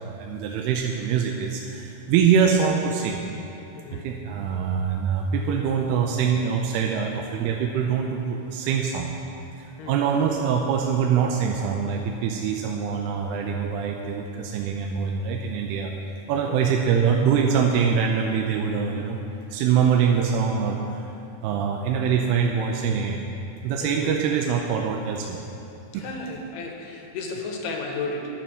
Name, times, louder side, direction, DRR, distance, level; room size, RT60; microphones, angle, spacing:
voice 1, 0.0-3.2 3.9-9.2 9.6-15.9 16.3-19.2 19.5-21.0 21.4-23.2 23.6-25.4 25.9-26.1, right 7 dB, 85° right, 1 dB, 2.6 m, -24 dB
voice 2, 3.7-4.1 9.8-10.1 16.5-16.6 23.8-24.1 25.9-28.3, left 3 dB, 85° left, 1 dB, 3.1 m, -33 dB
11.0 x 6.9 x 6.1 m, 2.7 s
omnidirectional pair, 4.5 m